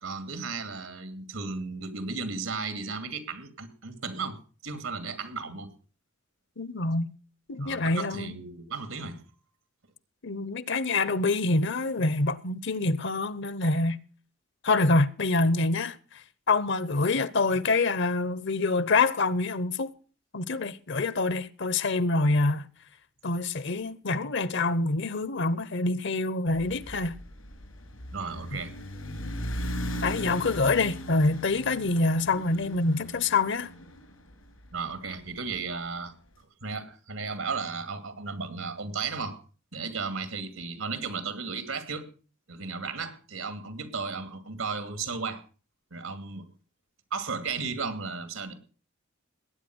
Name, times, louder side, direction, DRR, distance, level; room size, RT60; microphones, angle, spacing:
voice 1, 0.0-5.7 7.6-9.2 28.1-28.7 34.7-36.1 36.6-39.4 39.7-42.1 42.5-45.4 45.9-46.5 47.1-48.5, right 4 dB, 90° right, 2.6 m, -35 dB
voice 2, 6.6-7.1 7.5-8.3 10.2-14.0 14.6-16.0 16.5-19.9 20.3-22.7 23.2-27.2 30.0-33.7, left 3 dB, 60° left, 0.8 m, -26 dB
sound 1, 26.5-34.8, equal, 90° left, 6.2 m, -38 dB
19.5 x 9.3 x 6.1 m
head